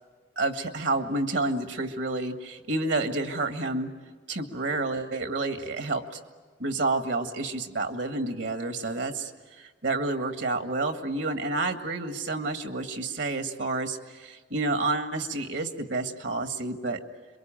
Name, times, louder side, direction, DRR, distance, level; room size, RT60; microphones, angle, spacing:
voice 1, 0.4-3.9 4.3-6.2 6.6-9.3 9.6-17.0, right 2 dB, 70° right, 7 dB, 1.9 m, -29 dB
27.0 x 23.0 x 9.0 m, 1.4 s
head